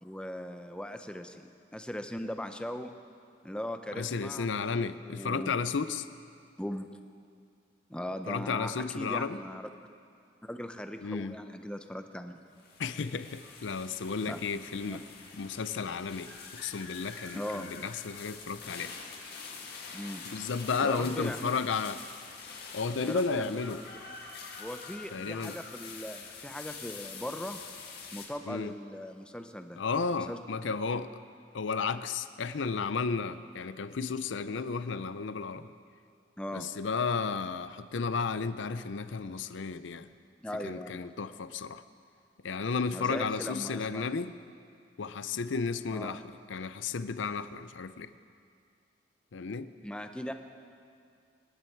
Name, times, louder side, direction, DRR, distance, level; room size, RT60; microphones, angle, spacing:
voice 1, 0.0-2.9 3.4-4.5 5.0-5.5 6.6-6.9 7.9-9.7 10.4-12.3 14.3-14.4 14.9-15.0 17.3-17.7 19.9-20.2 20.8-21.5 23.0-23.6 24.6-27.6 28.1-29.8 30.1-30.4 36.4-36.7 40.4-41.0 42.9-44.1 45.9-46.2 49.8-50.3, equal, 5° left, 7 dB, 0.6 m, -39 dB
voice 2, 4.0-6.1 8.3-9.4 11.0-11.4 12.8-15.0 15.3-18.9 20.3-22.0 22.7-23.8 25.1-25.6 28.5-28.7 29.8-31.1 31.5-35.7 36.5-40.1 40.6-41.8 42.4-44.3 45.0-48.1 49.3-49.7, left 5 dB, 80° left, 13 dB, 0.5 m, -33 dB
sound 1, 12.5-28.3, left 5 dB, 55° left, 1.9 m, -46 dB
25.0 x 11.0 x 4.6 m, 2.3 s
head